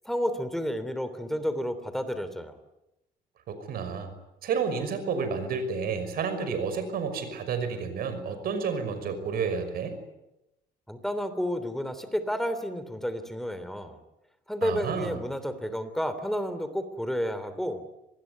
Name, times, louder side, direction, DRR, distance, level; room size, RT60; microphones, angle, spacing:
voice 1, 0.0-2.6 10.9-14.0 14.5-17.8, equal, ahead, 11 dB, 3.2 m, -31 dB
voice 2, 3.5-4.1 4.4-10.0 14.6-15.2, right 5 dB, 65° right, 10 dB, 5.8 m, -30 dB
26.0 x 20.0 x 9.5 m, 0.94 s
cardioid pair, 110°, 17 cm